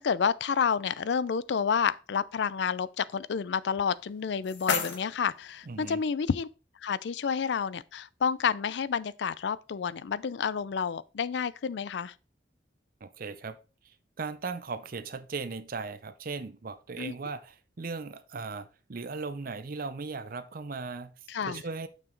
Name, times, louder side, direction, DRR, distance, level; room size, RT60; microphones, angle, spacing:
voice 1, 0.0-6.5 6.8-12.1 17.0-17.1 21.3-21.6, left 6 dB, 65° left, 0.4 m, -29 dB
sound 1, 3.9-5.9, left 5 dB, 90° left, 1.1 m, -35 dB
voice 2, 5.7-6.0 13.0-13.6 13.8-21.1 21.5-21.9, right 4 dB, 50° right, 0.6 m, -38 dB
7.0 x 5.8 x 3.9 m
head